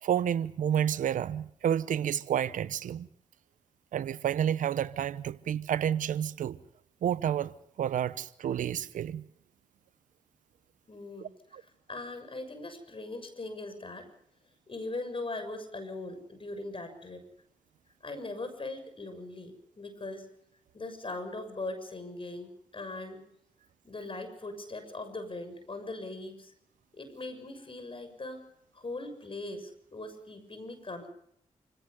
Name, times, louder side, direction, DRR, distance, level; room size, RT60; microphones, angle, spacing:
voice 1, 0.0-3.1 3.9-6.6 7.0-9.2 11.2-11.3, right 9 dB, 75° right, 0.9 m, -30 dB
voice 2, 10.9-14.1 14.7-17.2 18.0-20.3 20.7-23.2 23.8-26.5 26.9-28.4 28.7-31.1, left 2 dB, 40° left, 6.8 m, -40 dB
28.5 x 17.0 x 5.4 m
supercardioid pair, 40°, 13 cm